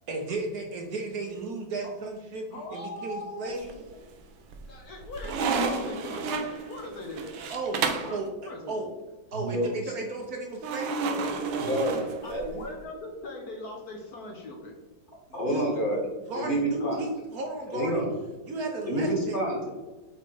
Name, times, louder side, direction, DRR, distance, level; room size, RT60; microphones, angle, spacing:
voice 1, 0.1-3.7 7.5-7.8 8.1-8.9 9.3-11.0 15.5-15.6 16.3-18.1 18.4-19.4, right 2 dB, 60° right, 1 dB, 1.2 m, -34 dB
voice 2, 2.5-3.6 4.6-7.4 8.0-8.8 11.9-14.8 16.8-17.1, left 2 dB, 60° left, 1 dB, 1.3 m, -40 dB
sound 1, 3.5-4.1 4.5-8.2 10.6-12.7, right 4 dB, 90° right, 1.5 m, -31 dB
voice 3, 9.3-9.9 11.6-12.4 15.3-17.0 17.7-18.1 18.9-19.7, right 1 dB, 40° left, -1 dB, 1.9 m, -28 dB
8.0 x 3.4 x 4.6 m, 1.2 s
omnidirectional pair, 2.0 m